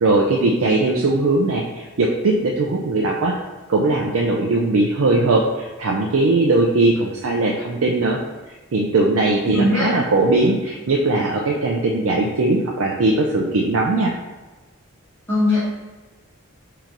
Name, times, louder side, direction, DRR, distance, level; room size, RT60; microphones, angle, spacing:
voice 1, 0.0-3.4 3.7-8.2 8.7-14.1, right 2 dB, 65° right, -1 dB, 0.4 m, -19 dB
voice 2, 9.5-9.9 15.3-15.6, left 1 dB, 10° left, -12 dB, 1.3 m, -19 dB
4.6 x 2.8 x 3.8 m, 1.2 s
head